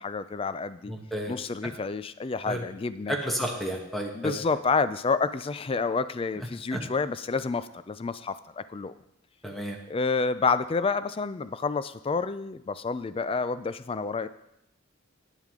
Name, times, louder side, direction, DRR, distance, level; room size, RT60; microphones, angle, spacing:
voice 1, 0.0-0.9 1.3-3.2 4.1-8.9 9.9-14.3, left 4 dB, 30° left, 14 dB, 0.4 m, -29 dB
voice 2, 0.9-1.3 2.5-2.6 3.1-4.3 6.7-6.8 9.4-9.8, equal, ahead, 1 dB, 1.2 m, -31 dB
10.5 x 9.3 x 3.7 m, 0.81 s
head